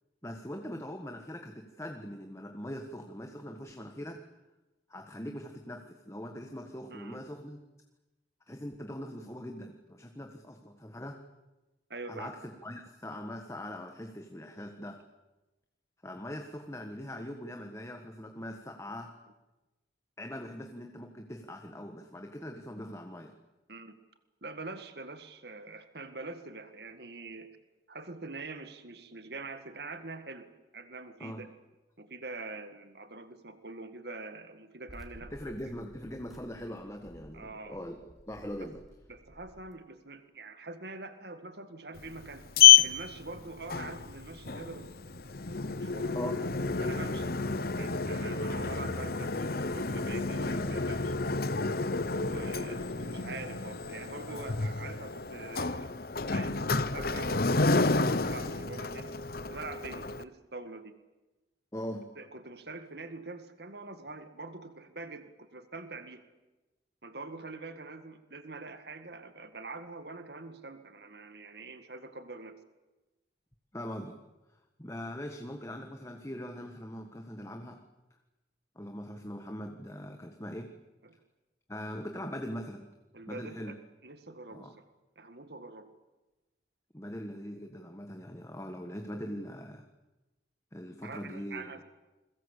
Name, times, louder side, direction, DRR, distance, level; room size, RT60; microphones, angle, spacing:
voice 1, 0.2-4.2 4.9-7.6 8.5-11.2 12.1-15.0 16.0-19.1 20.2-23.3 31.2-31.4 35.3-38.8 46.1-46.4 61.7-62.1 73.7-74.2 74.8-77.8 78.7-80.7 81.7-82.9 83.3-83.7 84.5-84.7 86.9-89.9 90.7-91.7, equal, 15° left, 4 dB, 1.6 m, -41 dB
voice 2, 6.9-7.2 11.9-12.3 23.7-24.0 24.4-27.5 27.9-31.5 32.0-35.4 37.3-37.9 39.1-42.5 42.8-44.9 45.8-46.2 46.8-47.3 47.8-51.2 52.1-55.9 56.2-59.1 59.5-60.9 62.2-66.2 67.0-72.5 81.0-81.2 83.1-83.8 84.0-84.7 85.2-85.9 91.0-91.8, right 3 dB, 60° right, 9 dB, 1.9 m, -44 dB
sound 1, 34.9-39.7, equal, ahead, 3.5 m, -54 dB
Sliding door, 42.0-60.2, left 6 dB, 55° left, 1.0 m, -29 dB
29.0 x 22.0 x 8.4 m, 1.1 s
head